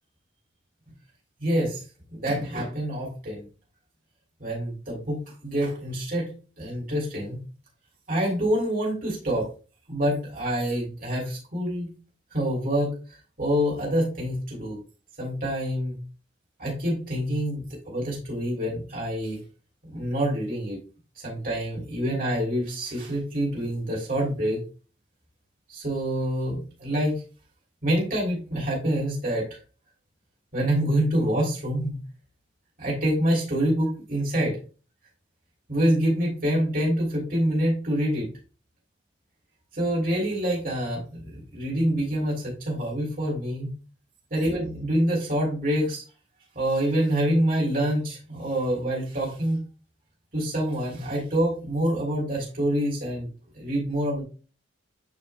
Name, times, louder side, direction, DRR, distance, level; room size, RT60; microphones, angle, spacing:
voice 1, 1.4-1.8 2.1-3.4 4.4-6.3 6.6-7.4 8.1-9.4 9.9-11.9 12.3-14.8 15.2-16.0 16.6-19.4 19.9-20.8 21.2-24.6 25.7-27.2 27.8-29.4 30.5-32.0 32.8-34.6 35.7-38.3 39.7-43.7 44.3-46.0 46.5-49.6 50.3-53.3 53.5-54.2, equal, 45° right, -3 dB, 2.9 m, -26 dB
8.9 x 5.4 x 2.2 m, 0.35 s
head